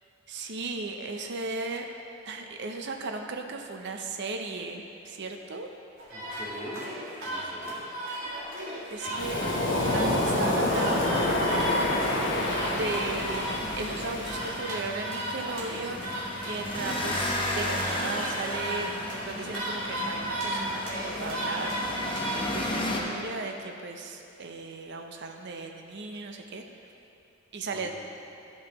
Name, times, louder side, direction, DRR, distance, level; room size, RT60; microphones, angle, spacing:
voice 1, 0.3-1.9 2.2-5.7 8.9-9.5 9.9-11.5 12.7-16.1 16.5-21.7 22.5-26.6 27.5-27.9, right 3 dB, 60° right, 4 dB, 0.6 m, -36 dB
sound 1, 6.0-22.5, right 1 dB, 90° right, 2.0 m, -35 dB
voice 2, 6.1-6.8 7.2-7.8 10.0-10.6 27.7-27.9, equal, 10° right, -4 dB, 1.2 m, -41 dB
sound 2, 9.1-23.0, left 1 dB, 25° left, 0.8 m, -35 dB
Waves surf, 9.2-14.6, left 1 dB, 65° left, 1.0 m, -27 dB
14.0 x 5.5 x 3.0 m, 2.6 s
head